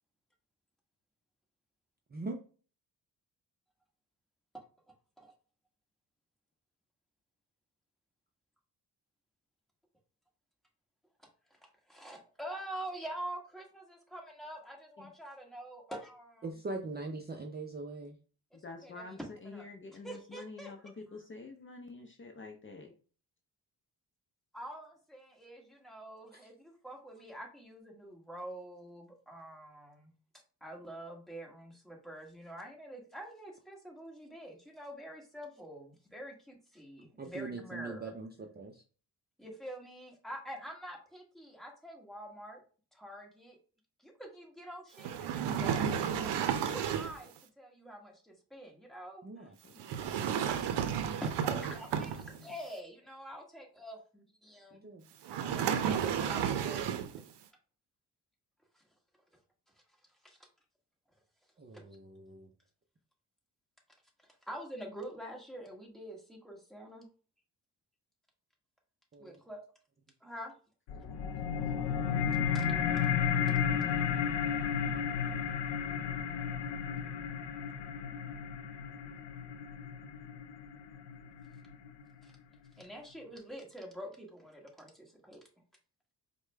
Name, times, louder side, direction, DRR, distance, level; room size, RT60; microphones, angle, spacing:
voice 1, 2.1-2.4 16.4-18.2 26.3-26.4 37.2-38.8 42.5-42.6 49.2-49.6 54.7-55.1 61.6-62.5 69.1-69.4 70.9-71.2 71.9-72.0, right 3 dB, 25° right, 2 dB, 0.5 m, -42 dB
voice 2, 11.9-16.4 18.5-19.7 20.0-20.7 24.5-30.1 30.6-38.1 39.4-42.6 42.9-43.6 44.0-46.3 46.6-49.5 51.2-54.9 55.2-57.0 58.7-58.8 60.1-60.4 61.7-61.8 64.2-67.1 69.2-69.6 70.2-70.5 72.5-72.7 82.2-82.3 82.7-85.4, right 1 dB, ahead, -1 dB, 1.3 m, -46 dB
voice 3, 18.6-22.9 49.6-50.3 52.0-52.1, left 3 dB, 30° left, 3 dB, 0.6 m, -48 dB
sound 1, 45.0-47.2 49.8-52.5 55.2-57.2, right 8 dB, 80° right, 0.6 m, -32 dB
sound 2, 70.9-81.9, left 7 dB, 80° left, 0.5 m, -33 dB
4.8 x 2.2 x 3.3 m, 0.38 s
cardioid pair, 90°, 41 cm